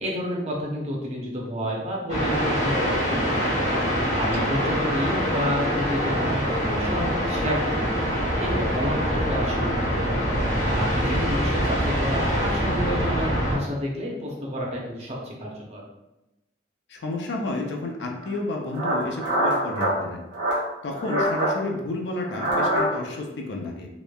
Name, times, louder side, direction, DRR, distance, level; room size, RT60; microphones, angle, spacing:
voice 1, 0.0-10.3 10.6-15.8, equal, 35° right, -3 dB, 0.6 m, -30 dB
sound 1, 2.1-13.6, equal, 45° left, 0.9 m, -24 dB
voice 2, 16.9-20.2 20.8-23.9, left 2 dB, 70° left, 2 dB, 0.4 m, -31 dB
sound 2, 18.2-18.3 18.7-19.9 20.3-20.6 20.9-21.5 22.2-23.1, equal, 85° right, 1.0 m, -24 dB
3.0 x 2.1 x 2.2 m, 0.95 s
head